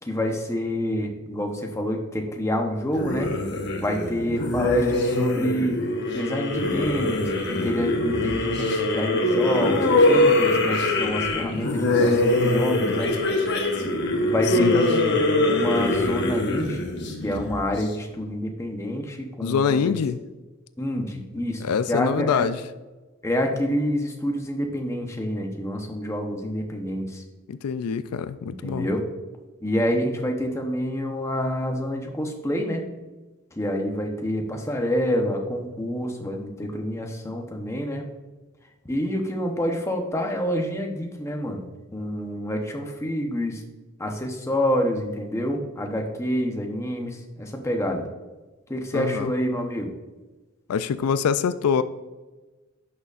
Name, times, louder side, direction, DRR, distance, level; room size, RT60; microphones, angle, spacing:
voice 1, 0.0-3.3 3.8-5.8 6.1-13.2 14.3-15.1 15.4-16.8 17.2-19.9 20.8-22.5 23.2-27.2 28.5-29.0 29.6-32.9 33.6-38.0 38.9-43.6 44.0-48.1 48.7-49.9, equal, 15° left, 2 dB, 0.8 m, -27 dB
sound 1, 2.9-17.8, left 2 dB, 50° left, 1.1 m, -23 dB
voice 2, 19.4-20.2 21.6-22.6 27.5-28.9 48.9-49.3 50.7-51.8, left 6 dB, 85° left, 13 dB, 0.4 m, -24 dB
10.5 x 6.5 x 2.5 m, 1.2 s
head